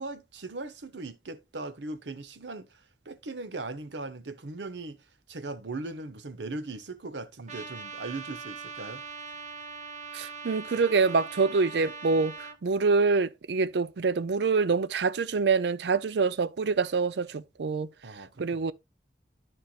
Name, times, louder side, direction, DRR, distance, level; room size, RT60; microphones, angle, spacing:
voice 1, 0.0-2.8 3.0-5.0 5.3-9.0 18.0-18.7, right 3 dB, 90° right, 1.0 m, -39 dB
Trumpet, 7.5-12.6, right 5 dB, 45° right, 1.1 m, -41 dB
voice 2, 10.1-17.9 18.4-18.7, right 4 dB, 70° right, 0.5 m, -26 dB
13.0 x 4.5 x 2.4 m
head